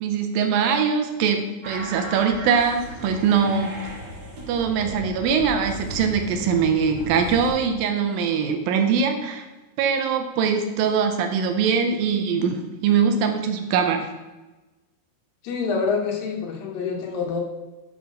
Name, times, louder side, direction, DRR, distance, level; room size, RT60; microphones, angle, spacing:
voice 1, 0.0-3.7 4.5-9.5 9.8-14.1, right 6 dB, 75° right, 6 dB, 2.3 m, -22 dB
sound 1, 1.6-7.5, equal, 45° right, 2.9 m, -36 dB
voice 2, 15.4-17.4, left 5 dB, 70° left, 1 dB, 2.7 m, -26 dB
10.5 x 4.4 x 5.3 m, 1.1 s
omnidirectional pair, 4.3 m